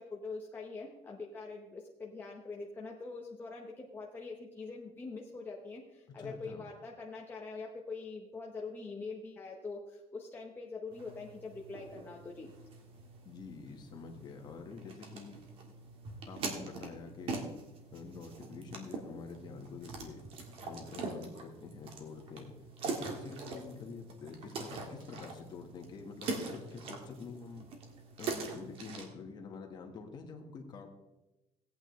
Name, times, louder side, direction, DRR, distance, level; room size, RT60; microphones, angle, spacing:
voice 1, 0.0-12.5, left 3 dB, 15° left, -2 dB, 1.0 m, -44 dB
voice 2, 6.1-6.7 13.2-15.4 16.3-17.5 17.9-20.3 20.6-22.5 22.8-27.7 28.2-30.9, left 5 dB, 35° left, 3 dB, 1.5 m, -47 dB
sound 1, 10.9-29.1, right 3 dB, 50° right, 1.7 m, -43 dB
17.0 x 8.7 x 3.2 m, 1.0 s
cardioid pair, 170°, 12 cm